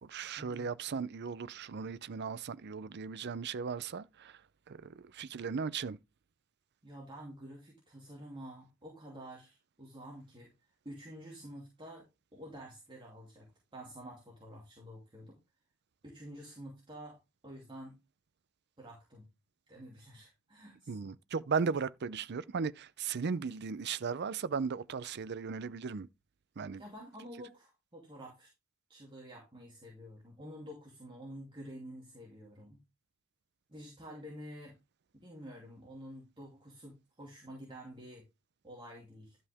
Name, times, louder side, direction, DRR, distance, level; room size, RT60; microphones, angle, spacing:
voice 1, 0.0-4.4 4.7-6.0 20.9-26.1 26.6-26.8, right 5 dB, 50° right, 0.5 m, -36 dB
voice 2, 6.8-10.5 10.8-13.5 13.7-15.4 16.0-18.0 18.8-19.2 19.7-20.9 26.8-28.5 28.9-32.8 33.7-34.7 35.1-38.3 38.6-39.4, equal, 25° right, 2.8 m, -49 dB
12.0 x 5.5 x 3.5 m
head